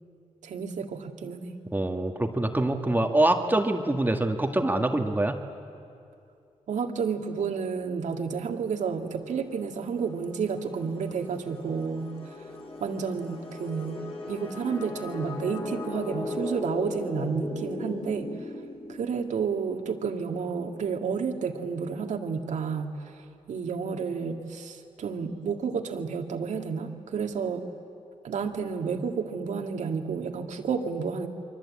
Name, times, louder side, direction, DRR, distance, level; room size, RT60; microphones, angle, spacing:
voice 1, 0.4-1.6 6.7-12.5 12.8-18.5 18.9-23.2 23.5-27.7 28.2-31.3, right 6 dB, 75° right, 5 dB, 2.1 m, -31 dB
voice 2, 1.7-5.4, right 1 dB, 15° right, 4 dB, 1.8 m, -25 dB
sound 1, 9.2-19.7, left 2 dB, 50° left, 6.9 m, -38 dB
29.0 x 23.5 x 8.6 m, 2.5 s
cardioid pair, 75°, 12 cm